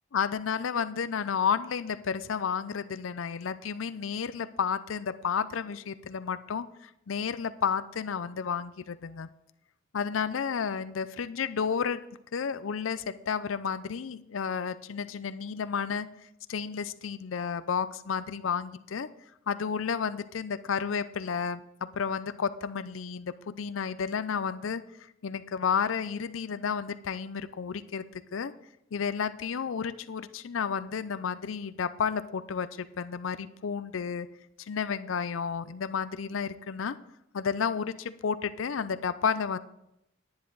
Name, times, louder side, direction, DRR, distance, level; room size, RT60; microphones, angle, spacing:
voice 1, 0.1-9.3 9.9-12.0 12.3-16.1 16.5-19.1 19.5-24.8 25.2-28.5 28.9-34.3 34.6-37.0 37.3-39.6, left 6 dB, 80° left, 15 dB, 0.5 m, -31 dB
10.5 x 10.0 x 3.9 m, 0.82 s
head